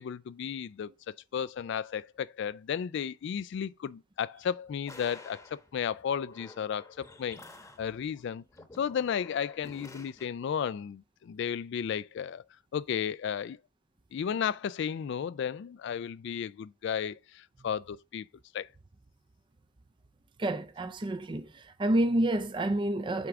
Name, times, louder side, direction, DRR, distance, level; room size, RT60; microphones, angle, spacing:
voice 1, 0.0-7.4 7.8-8.4 8.8-12.4 12.7-13.6 14.1-18.3 18.5-18.7, left 8 dB, 60° left, 0.3 m, -34 dB
sound 1, 4.9-10.3, left 2 dB, 15° left, 1.0 m, -51 dB
voice 2, 20.4-21.5 21.8-23.3, right 1 dB, 25° right, 0.5 m, -28 dB
8.1 x 3.7 x 5.8 m
head